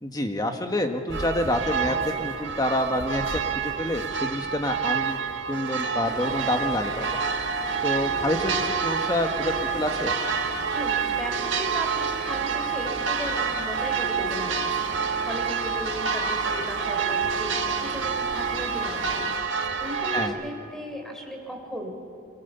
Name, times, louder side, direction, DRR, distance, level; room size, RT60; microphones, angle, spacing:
voice 1, 0.0-5.2 5.5-7.0 7.8-10.2 20.1-20.3, left 1 dB, 20° left, 5 dB, 1.5 m, -27 dB
sound 1, 1.1-20.3, right 5 dB, 90° right, 1.6 m, -28 dB
sound 2, 6.0-19.3, right 1 dB, 20° right, 1.9 m, -41 dB
voice 2, 10.7-19.3 19.8-22.0, equal, ahead, 2 dB, 3.6 m, -36 dB
25.0 x 23.0 x 7.1 m, 2.3 s
head